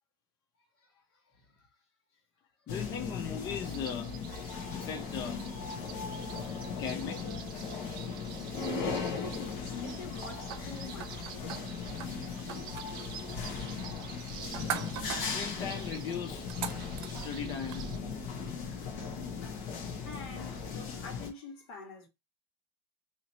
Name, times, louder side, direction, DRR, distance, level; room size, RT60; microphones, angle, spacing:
voice 1, 0.8-1.7 8.8-11.4 18.4-19.3 19.7-22.1, left 4 dB, 80° left, 1.6 m, -48 dB
sound 1, 2.7-21.3, left 5 dB, 60° left, 0.9 m, -38 dB
voice 2, 2.7-4.1 4.7-5.5 6.7-7.5 15.2-16.5 17.1-18.1, left 7 dB, 30° left, 0.6 m, -39 dB
sound 2, 3.6-18.0, right 11 dB, 35° right, 0.4 m, -50 dB
sound 3, 10.5-17.8, right 9 dB, 80° right, 0.7 m, -43 dB
3.0 x 2.8 x 4.1 m
cardioid pair, 165°, 13 cm